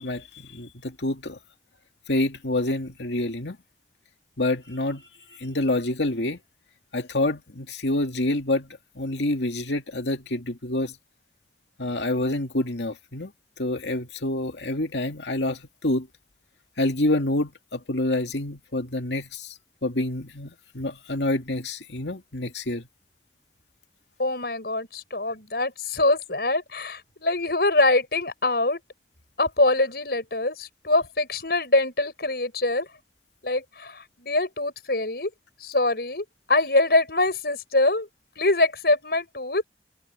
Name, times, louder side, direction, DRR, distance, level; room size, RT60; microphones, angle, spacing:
voice 1, 0.0-1.4 2.1-3.6 4.4-6.4 6.9-11.0 11.8-13.3 13.6-16.1 16.8-22.9, left 1 dB, 85° left, 2.3 m, -27 dB
voice 2, 24.2-28.8 29.4-32.9 33.4-35.3 35.6-38.1 38.4-39.6, left 2 dB, 60° left, 6.9 m, -24 dB
head